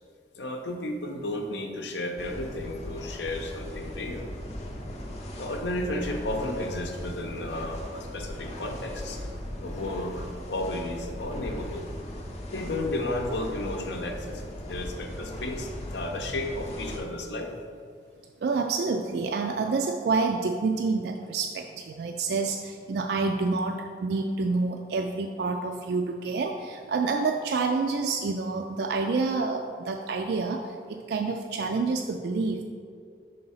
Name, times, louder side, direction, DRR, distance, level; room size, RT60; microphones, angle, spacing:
voice 1, 0.4-4.3 5.4-9.2 9.6-11.8 12.5-17.5, left 1 dB, 70° left, 3 dB, 0.8 m, -33 dB
sound 1, 2.2-17.0, left 1 dB, 35° left, 0.7 m, -38 dB
voice 2, 18.4-32.6, right 4 dB, 60° right, 3 dB, 0.3 m, -28 dB
5.5 x 3.9 x 5.5 m, 2.2 s
head